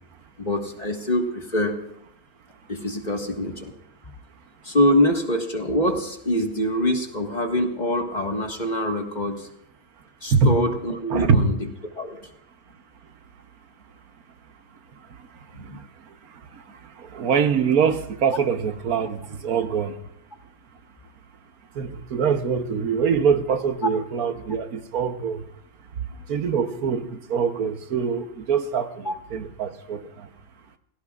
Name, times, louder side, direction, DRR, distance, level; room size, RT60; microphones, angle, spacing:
voice 1, 0.4-1.8 2.7-3.7 4.6-9.5 10.2-11.6 11.9-12.2 15.5-15.8 29.0-29.1, left 1 dB, 30° left, 1.7 m, -24 dB
voice 2, 11.1-11.4 17.0-19.9 21.7-25.4 26.3-30.3, right 6 dB, 80° right, 1.5 m, -23 dB
30.0 x 16.5 x 2.4 m
omnidirectional pair, 1.5 m